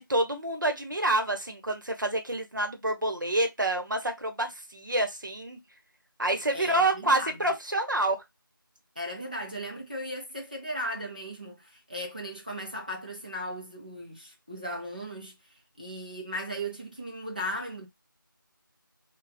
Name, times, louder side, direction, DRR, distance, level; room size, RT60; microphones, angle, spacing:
voice 1, 0.0-5.6 6.2-8.2, right 1 dB, 60° right, 1.0 m, -28 dB
voice 2, 6.5-7.6 9.0-15.4 15.8-17.9, equal, 25° right, 0.7 m, -37 dB
3.5 x 2.3 x 3.5 m
figure-of-eight pair, 180°, 12 cm